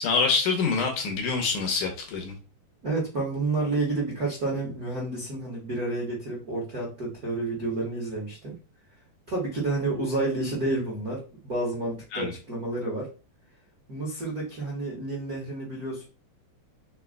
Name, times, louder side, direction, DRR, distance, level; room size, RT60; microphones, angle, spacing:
voice 1, 0.0-2.4 12.1-12.3, left 4 dB, 70° left, 2 dB, 2.1 m, -26 dB
voice 2, 2.8-8.6 9.3-13.1 13.9-16.1, right 2 dB, 80° right, -4 dB, 0.8 m, -30 dB
5.8 x 3.7 x 2.2 m, 0.34 s
omnidirectional pair, 4.3 m